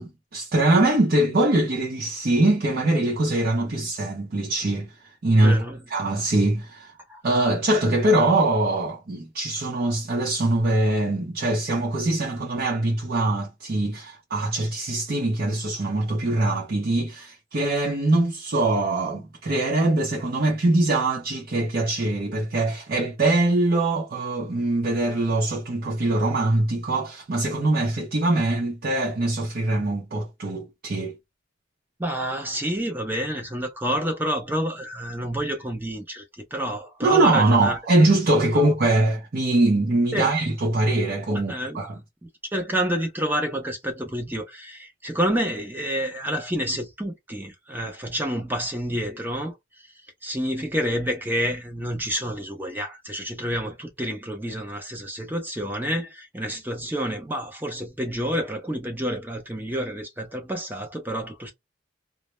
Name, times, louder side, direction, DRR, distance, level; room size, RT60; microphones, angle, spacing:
voice 1, 0.0-4.9 5.2-5.6 5.9-6.9 7.2-31.1 37.0-42.0, right 2 dB, 55° right, 0.6 m, -22 dB
voice 2, 5.4-5.8 7.1-7.2 32.0-37.8 38.5-38.7 40.1-40.3 41.3-41.9 42.5-61.5, equal, 10° right, 0.5 m, -29 dB
2.1 x 2.0 x 2.9 m
head